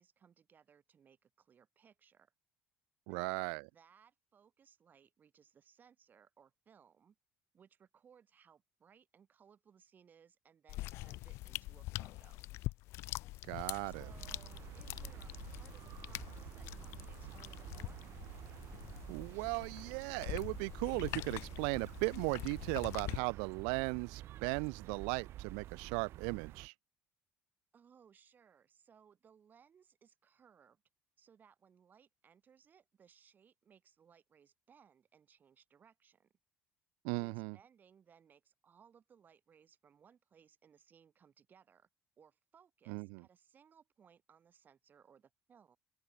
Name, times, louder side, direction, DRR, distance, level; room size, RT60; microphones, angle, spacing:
voice 1, 0.0-2.3 3.1-7.2 7.5-12.5 13.9-18.0 27.7-30.8 31.2-36.3 37.1-41.9 42.2-45.8, right 7 dB, 40° right, 5.2 m, -65 dB
voice 2, 3.1-3.6 13.5-14.1 19.1-26.7 37.0-37.6 42.9-43.2, right 40 dB or more, 85° right, 0.5 m, -37 dB
sound 1, 10.7-23.2, left 19 dB, 70° left, 0.4 m, -45 dB
sound 2, 13.9-26.7, right 14 dB, 65° right, 2.1 m, -50 dB
open air
supercardioid pair, 90°, 5 cm